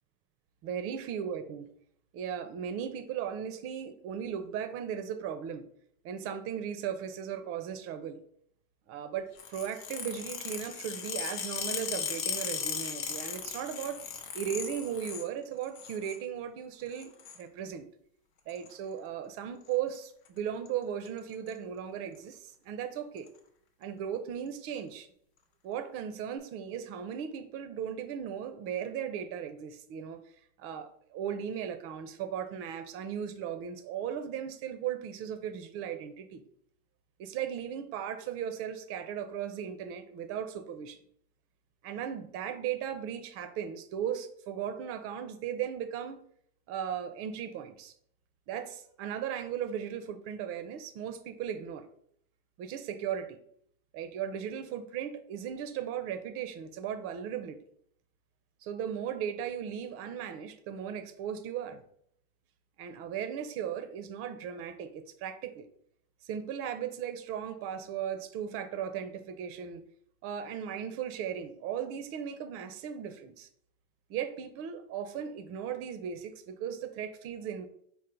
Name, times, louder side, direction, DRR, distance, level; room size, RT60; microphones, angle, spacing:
voice 1, 0.6-1.7 2.1-5.7 6.0-8.2 8.9-14.0 14.3-17.9 18.5-23.3 23.8-25.1 25.6-30.2 30.6-36.4 37.2-41.0 41.8-46.2 46.7-47.9 48.5-51.9 52.6-53.4 53.9-57.6 58.6-61.8 62.8-65.7 66.2-69.8 70.2-73.5 74.1-77.7, right 8 dB, 45° right, 9 dB, 0.5 m, -37 dB
sound 1, 9.4-15.3 15.6-16.2 16.9-17.4 18.5-18.7 19.7-20.0 20.3-20.4 20.7-20.8 21.1-21.5 22.1-22.2 23.2-23.3, left 7 dB, 75° left, 0.8 m, -37 dB
3.8 x 2.1 x 4.3 m, 0.67 s
supercardioid pair, 115°, 33 cm